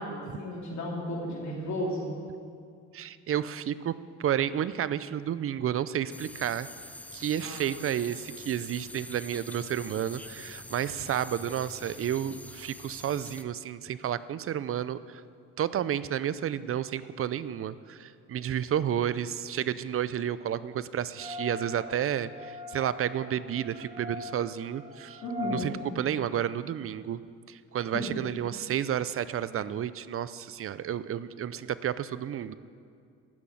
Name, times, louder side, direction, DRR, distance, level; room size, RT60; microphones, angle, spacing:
voice 1, 0.0-2.1 7.4-7.6 25.2-25.7 27.9-28.1, left 1 dB, 65° left, -3 dB, 2.9 m, -34 dB
voice 2, 2.9-3.9 4.2-6.7 7.1-15.2 15.6-27.2 27.5-32.5, right 10 dB, 45° right, 16 dB, 0.5 m, -31 dB
sound 1, 6.1-13.4, left 1 dB, 5° left, 0.6 m, -45 dB
sound 2, 21.1-25.6, left 1 dB, 15° right, 1.1 m, -41 dB
13.5 x 6.2 x 8.4 m, 2.3 s
cardioid pair, 90°, 30 cm